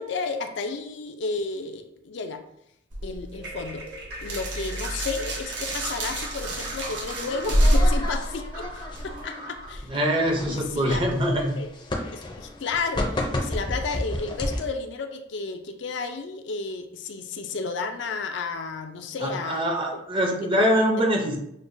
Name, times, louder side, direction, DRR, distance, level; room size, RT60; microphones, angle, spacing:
voice 1, 0.0-2.4 3.0-3.9 4.2-9.9 10.5-11.0 11.6-11.7 12.1-20.0 20.6-20.7, left 4 dB, 75° left, 5 dB, 0.4 m, -32 dB
sound 1, 2.9-9.2, equal, 75° right, 0.9 m, -26 dB
sound 2, 3.3-9.8, right 1 dB, 60° right, 1.2 m, -40 dB
sound 3, 5.9-14.6, left 1 dB, 25° left, 0.5 m, -33 dB
voice 2, 9.9-11.6 19.2-21.4, equal, 25° right, 1 dB, 0.6 m, -24 dB
6.3 x 2.2 x 2.6 m, 0.76 s
head